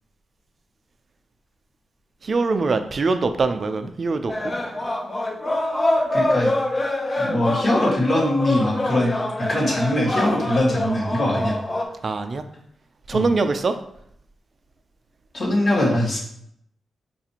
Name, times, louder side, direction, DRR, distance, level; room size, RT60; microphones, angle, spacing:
voice 1, 2.2-4.3 11.4-11.5 12.0-12.4 13.1-13.7, right 3 dB, 55° right, 8 dB, 0.4 m, -23 dB
sound 1, 4.3-11.8, left 1 dB, 30° left, 0.7 m, -25 dB
voice 2, 6.1-6.5 7.2-9.1 9.5-11.5 13.1-13.2 15.3-16.2, left 1 dB, 60° left, -4 dB, 1.6 m, -21 dB
5.2 x 2.4 x 2.8 m, 0.72 s
cardioid pair, 55°, 0 cm